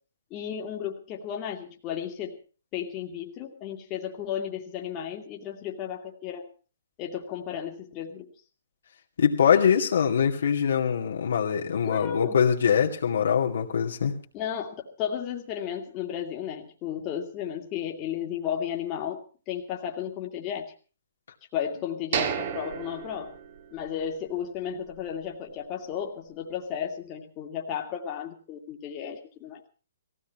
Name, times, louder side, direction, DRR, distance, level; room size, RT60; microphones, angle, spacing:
voice 1, 0.3-2.4 2.7-6.5 7.0-8.3 11.8-12.4 14.3-19.2 19.5-20.7 21.5-23.4 23.7-29.6, left 9 dB, 30° left, 2 dB, 2.2 m, -34 dB
voice 2, 9.2-14.2, left 7 dB, 70° left, 1 dB, 2.3 m, -23 dB
sound 1, 22.1-24.1 24.4-24.5 25.0-25.2, right 8 dB, 55° right, 2.1 m, -32 dB
17.5 x 16.0 x 4.6 m, 0.37 s
hypercardioid pair, 135°, 0 cm